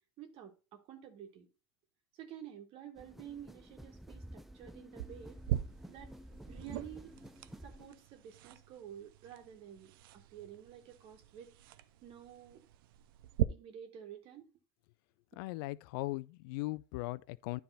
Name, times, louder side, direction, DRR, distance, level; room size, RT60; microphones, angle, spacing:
voice 1, 0.2-1.5 2.2-5.4 5.9-6.1 6.5-7.2 7.6-11.5 12.0-12.6 13.5-14.5, right 9 dB, 55° right, 1.6 m, -51 dB
sound 1, 3.0-8.0, equal, ahead, 0.5 m, -51 dB
sound 2, 5.0-13.4, right 14 dB, 80° right, 0.5 m, -41 dB
voice 2, 15.3-17.6, left 20 dB, 70° left, 0.4 m, -39 dB
10.0 x 3.5 x 5.4 m
supercardioid pair, 100°, 12 cm